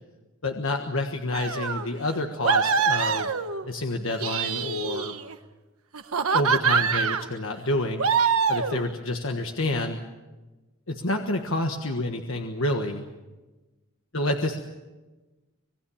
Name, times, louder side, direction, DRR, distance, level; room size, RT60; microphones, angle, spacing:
voice 1, 0.4-3.3 3.6-5.1 6.3-8.0 8.5-10.0 10.9-13.0 14.1-14.6, left 2 dB, 65° left, 4 dB, 1.5 m, -28 dB
sound 1, 1.3-1.9 2.4-3.7 4.1-5.3 5.9-7.3 8.0-8.8, right 6 dB, 75° right, 1.2 m, -24 dB
26.0 x 20.5 x 7.3 m, 1.2 s
head